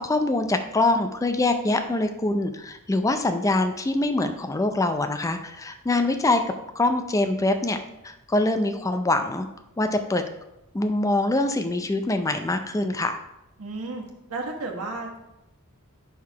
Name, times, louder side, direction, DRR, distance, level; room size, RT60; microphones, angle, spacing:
voice 1, 0.0-6.4 6.8-7.8 8.0-9.5 9.8-10.2 10.7-13.2, left 2 dB, 15° left, 7 dB, 0.4 m, -24 dB
voice 2, 13.6-14.0 14.3-15.2, right 2 dB, 85° right, 0 dB, 1.3 m, -32 dB
5.7 x 4.7 x 4.6 m, 0.88 s
head